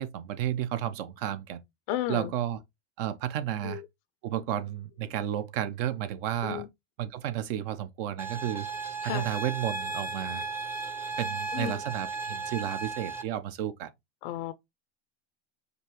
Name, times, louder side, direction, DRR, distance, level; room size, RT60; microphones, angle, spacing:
voice 1, 0.0-1.6 2.1-2.6 3.0-3.8 4.2-6.6 7.0-8.7 9.0-10.4 11.2-13.9, right 11 dB, 60° right, 0.7 m, -32 dB
voice 2, 1.9-2.3 3.6-3.9 6.4-6.7 9.0-9.3 11.5-11.8 14.2-14.5, left 13 dB, 55° left, 0.5 m, -33 dB
sound 1, 8.2-13.2, right 4 dB, 10° right, 0.6 m, -35 dB
5.3 x 2.5 x 3.0 m
hypercardioid pair, 100°, 32 cm